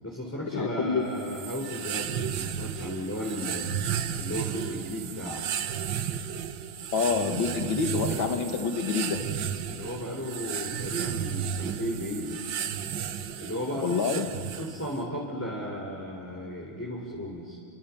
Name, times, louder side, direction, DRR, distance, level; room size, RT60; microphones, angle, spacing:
voice 1, 0.0-3.7 4.2-5.4 9.7-12.4 13.4-14.3 14.6-17.6, equal, 5° left, -3 dB, 3.2 m, -35 dB
voice 2, 0.5-1.1 6.9-9.2 13.8-14.3, left 5 dB, 70° left, 6 dB, 2.3 m, -27 dB
sound 1, 1.2-15.0, right 9 dB, 65° right, 1.6 m, -33 dB
29.5 x 25.0 x 7.1 m, 2.4 s
omnidirectional pair, 2.3 m